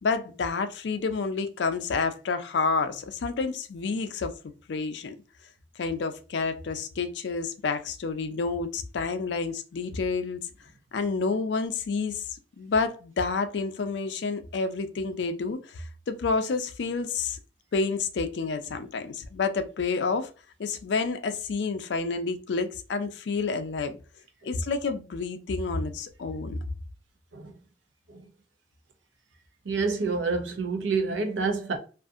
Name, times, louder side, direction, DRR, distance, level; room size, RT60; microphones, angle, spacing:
voice 1, 0.0-4.3 4.7-5.1 5.8-10.5 10.9-12.3 12.6-17.4 17.7-20.3 20.6-24.0 24.4-26.5, left 4 dB, 70° left, 0.4 m, -29 dB
voice 2, 29.6-31.8, right 4 dB, 85° right, 0.6 m, -28 dB
2.6 x 2.4 x 2.4 m
head